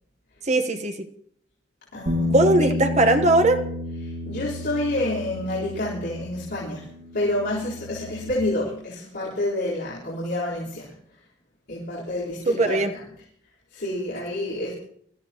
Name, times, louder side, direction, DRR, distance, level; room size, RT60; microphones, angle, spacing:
voice 1, 0.4-1.1 2.3-3.6 12.5-12.9, right 2 dB, 40° right, 7 dB, 1.1 m, -19 dB
voice 2, 1.9-2.4 4.2-6.9 7.1-10.9 11.7-12.8 13.7-14.7, left 1 dB, 60° left, -10 dB, 4.2 m, -28 dB
Bass guitar, 2.1-8.3, left 2 dB, 55° right, 2.1 m, -31 dB
24.5 x 14.0 x 3.0 m, 0.66 s
head